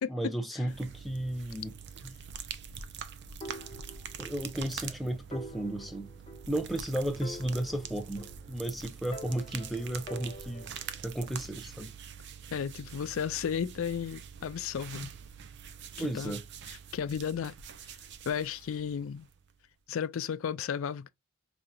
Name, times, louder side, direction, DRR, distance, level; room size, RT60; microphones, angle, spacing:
voice 1, 0.1-1.7 2.0-2.2 4.2-6.1 6.5-10.7 11.0-11.9 16.0-16.4, right 1 dB, ahead, 0.6 m, -34 dB
sound 1, 0.7-19.6, right 7 dB, 55° right, 0.5 m, -45 dB
sound 2, 3.4-4.6 4.9-5.0 5.3-6.8 7.2-8.7 9.1-11.0, right 1 dB, 25° left, 0.9 m, -46 dB
voice 2, 12.5-15.1 16.0-16.4 16.7-17.5 18.3-19.3 19.9-21.1, left 7 dB, 65° left, 0.4 m, -34 dB
5.0 x 2.8 x 2.3 m
head